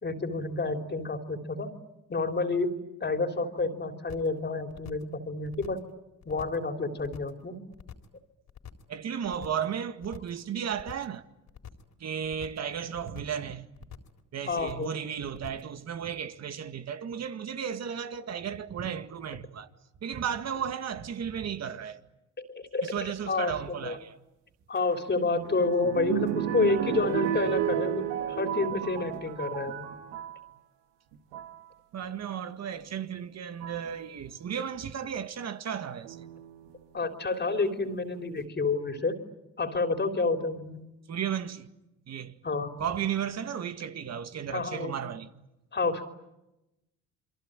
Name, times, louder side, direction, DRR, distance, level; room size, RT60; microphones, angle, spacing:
voice 1, 0.0-1.7 2.1-2.7 3.0-5.8 6.3-7.6 14.5-15.1 22.5-22.9 23.3-24.0 24.7-29.9 36.9-39.2 39.6-40.8 42.4-42.7 44.5-44.9 45.7-46.0, left 3 dB, 30° left, 3.6 m, -29 dB
sound 1, 4.1-4.4 4.7-5.1 5.4-5.9 6.2-6.7 7.0-7.4 7.7-8.2 8.5-8.9 9.2-9.7 10.0-10.4 10.7-11.2 11.5-11.9 12.2-12.7 13.0-13.4 13.7-14.2 14.5-15.0 15.3-15.7, left 8 dB, 60° left, 3.8 m, -46 dB
voice 2, 8.9-11.2 12.0-13.9 14.3-19.7 20.0-22.0 22.8-24.2 31.9-36.3 41.1-41.7 42.1-42.4 42.8-45.3, right 8 dB, 55° right, 2.0 m, -34 dB
sound 2, 24.8-30.4 31.1-31.6 32.8-32.9 33.6-33.9 36.0-36.7 37.3-37.4 37.7-37.8, right 11 dB, 90° right, 2.0 m, -33 dB
28.5 x 23.0 x 9.0 m
supercardioid pair, 70°, 32 cm